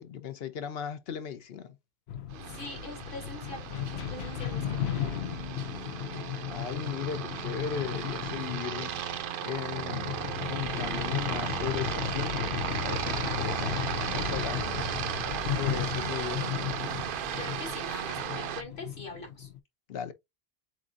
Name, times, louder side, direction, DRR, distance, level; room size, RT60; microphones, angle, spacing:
voice 1, 0.0-1.8 6.5-8.9 9.4-10.1 10.4-15.1 15.5-16.4 19.9-20.1, left 8 dB, 70° left, 0.9 m, -37 dB
sound 1, 2.1-19.6, left 10 dB, 90° left, 0.9 m, -35 dB
voice 2, 2.3-3.7 3.9-5.0 17.1-19.5, left 3 dB, 55° left, 2.0 m, -43 dB
Aircraft, 2.3-18.6, right 9 dB, 65° right, 0.7 m, -35 dB
7.4 x 2.6 x 2.4 m
omnidirectional pair, 1.1 m